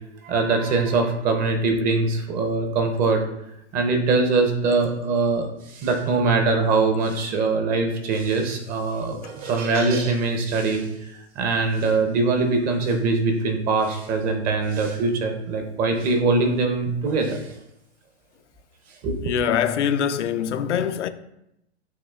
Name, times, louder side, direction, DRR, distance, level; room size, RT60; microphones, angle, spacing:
voice 1, 0.2-3.2 3.7-17.5 19.0-19.3, right 3 dB, 25° right, 0.6 m, -22 dB
voice 2, 19.2-21.1, left 8 dB, 85° left, 0.5 m, -23 dB
6.3 x 2.8 x 2.3 m
hypercardioid pair, 125°, 34 cm